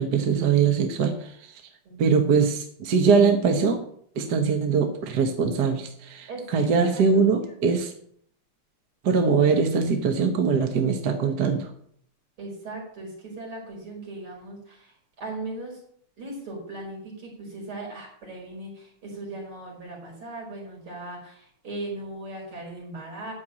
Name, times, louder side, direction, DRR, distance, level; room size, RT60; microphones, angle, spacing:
voice 1, 0.0-1.5 2.0-3.8 4.1-7.9 9.0-11.7, right 5 dB, 50° right, 4 dB, 1.6 m, -22 dB
voice 2, 6.3-7.2 12.4-15.8 16.2-23.3, right 2 dB, 75° right, -3 dB, 5.9 m, -38 dB
13.5 x 4.7 x 8.8 m, 0.63 s
omnidirectional pair, 2.4 m